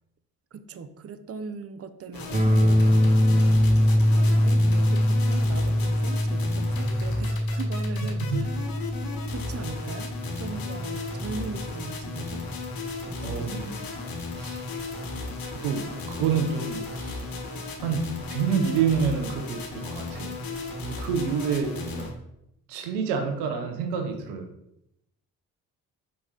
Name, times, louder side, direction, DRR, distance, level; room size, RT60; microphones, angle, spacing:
voice 1, 0.5-8.6 9.3-12.4 13.1-13.6, right 5 dB, 35° right, 11 dB, 0.7 m, -39 dB
sound 1, 2.1-22.1, left 3 dB, 60° left, 1.6 m, -35 dB
sound 2, 2.3-12.2, left 1 dB, 20° right, 1.0 m, -23 dB
voice 2, 13.2-13.7 14.4-14.7 15.5-17.3 17.8-20.3 20.8-22.1 22.7-24.4, right 6 dB, 90° right, 5 dB, 0.8 m, -28 dB
5.9 x 5.0 x 3.9 m, 0.81 s
hypercardioid pair, 45°, 40 cm